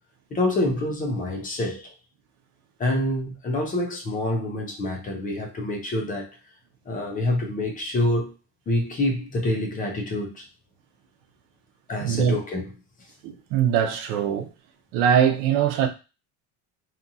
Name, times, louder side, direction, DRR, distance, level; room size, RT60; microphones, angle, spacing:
voice 1, 0.3-1.9 2.8-6.3 6.9-8.3 8.7-10.4 11.9-12.6, left 1 dB, 25° left, 0.4 m, -26 dB
voice 2, 12.0-12.4 13.2-14.5 14.9-15.9, right 8 dB, 80° right, 0.6 m, -22 dB
2.8 x 2.4 x 2.6 m
cardioid pair, 165°, 37 cm